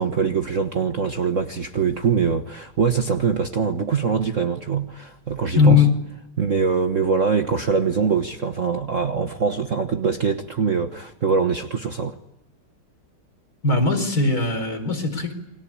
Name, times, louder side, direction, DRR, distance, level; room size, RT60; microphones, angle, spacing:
voice 1, 0.0-5.8 6.4-12.1, right 5 dB, 40° right, 1.5 m, -23 dB
voice 2, 5.5-5.9 13.6-15.3, left 4 dB, 45° left, 5.2 m, -19 dB
29.0 x 23.5 x 8.7 m
omnidirectional pair, 2.3 m